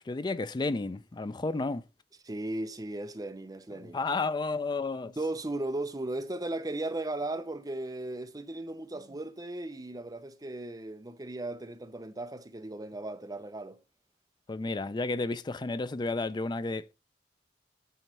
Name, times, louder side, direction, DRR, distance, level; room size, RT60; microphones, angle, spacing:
voice 1, 0.0-1.8 3.9-5.1 14.5-16.8, left 3 dB, 25° left, 0.4 m, -32 dB
voice 2, 2.2-4.0 5.0-13.8, right 2 dB, 20° right, 0.7 m, -36 dB
9.2 x 3.2 x 5.5 m
head